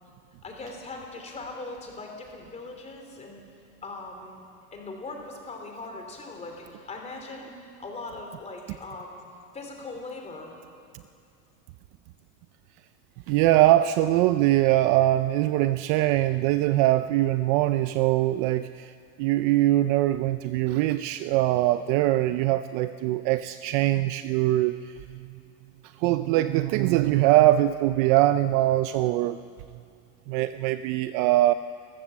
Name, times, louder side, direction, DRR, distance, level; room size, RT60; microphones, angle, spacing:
voice 1, 0.4-3.4 3.8-4.4 4.7-9.2 9.5-10.5, left 3 dB, 15° left, 2 dB, 3.3 m, -40 dB
voice 2, 13.3-18.9 19.2-24.8 26.0-29.4 30.3-31.5, right 15 dB, 45° right, 13 dB, 0.4 m, -22 dB
30.0 x 14.5 x 7.1 m, 2.4 s
supercardioid pair, 160°, 39 cm